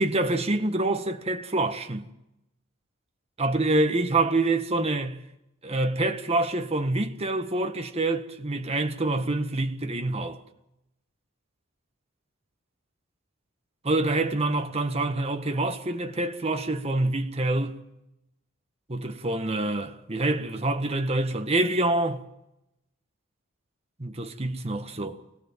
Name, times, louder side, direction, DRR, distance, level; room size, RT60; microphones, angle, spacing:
voice 1, 0.0-2.1 3.4-5.2 5.6-10.4 13.8-17.8 18.9-22.2 24.0-25.2, right 2 dB, 30° right, 1.6 m, -26 dB
25.0 x 18.0 x 7.5 m
head